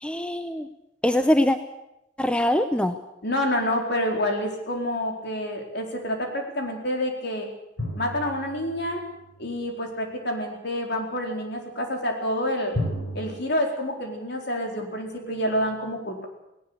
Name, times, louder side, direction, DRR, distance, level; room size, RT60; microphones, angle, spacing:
voice 1, 0.0-0.7 1.0-1.6 2.2-3.0, left 1 dB, 5° left, 8 dB, 0.8 m, -22 dB
voice 2, 3.2-7.5 7.9-9.0 9.4-12.8 13.1-16.3, left 1 dB, 60° left, 2 dB, 4.4 m, -28 dB
sound 1, 7.8-9.4 12.7-13.3, left 1 dB, 85° left, 5.1 m, -32 dB
18.5 x 18.5 x 8.2 m, 0.86 s
head